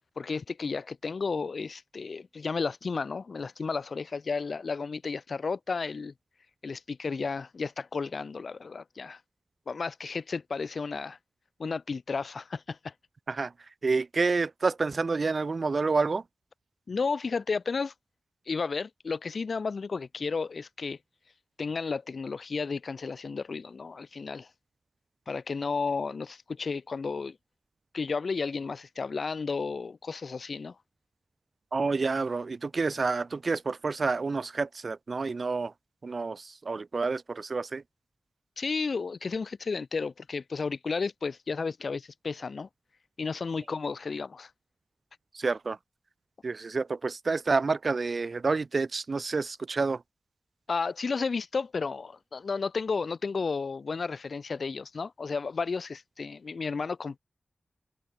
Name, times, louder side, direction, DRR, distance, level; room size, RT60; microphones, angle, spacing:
voice 1, 0.2-6.1 6.6-9.2 9.7-11.2 11.6-12.9 16.9-17.9 18.5-21.0 21.6-24.5 25.3-27.4 27.9-30.7 38.6-42.7 43.2-44.5 50.7-57.2, left 4 dB, 70° left, 3.3 m, -33 dB
voice 2, 13.8-16.2 31.7-35.7 36.0-37.8 45.3-45.8 46.4-50.0, right 4 dB, 60° right, 1.1 m, -29 dB
wide cardioid pair, 70°, 0 cm